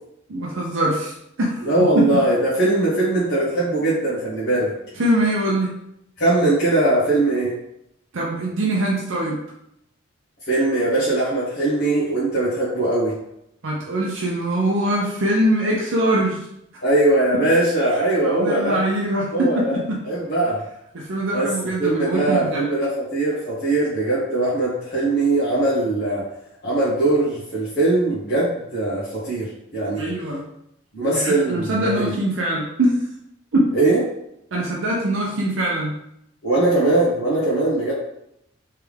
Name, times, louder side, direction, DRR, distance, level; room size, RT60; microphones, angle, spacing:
voice 1, 0.3-1.7 2.1-2.2 5.0-5.8 8.1-9.4 13.6-16.5 17.3-17.5 18.2-20.0 20.9-22.6 29.9-30.5 31.1-33.1 33.5-33.7 34.5-36.0, right 1 dB, 70° right, -3 dB, 0.6 m, -23 dB
voice 2, 1.6-4.7 6.2-7.5 10.5-13.1 16.8-18.8 19.3-19.8 20.0-20.6 21.3-26.2 26.6-30.1 30.9-32.1 33.7-34.0 36.4-37.9, right 2 dB, 55° left, -10 dB, 1.2 m, -20 dB
3.4 x 3.3 x 3.4 m, 0.78 s
head